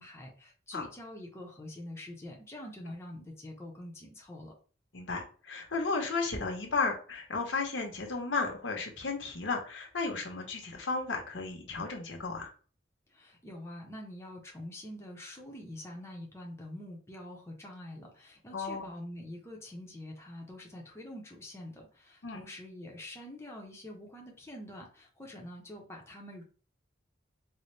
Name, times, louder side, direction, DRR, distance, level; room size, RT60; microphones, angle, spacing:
voice 1, 0.0-4.5 13.1-26.4, left 1 dB, 15° left, -1 dB, 0.7 m, -45 dB
voice 2, 4.9-12.5 18.5-18.9 22.2-22.4, left 4 dB, 80° left, 3 dB, 0.9 m, -34 dB
4.1 x 2.1 x 3.2 m, 0.40 s
head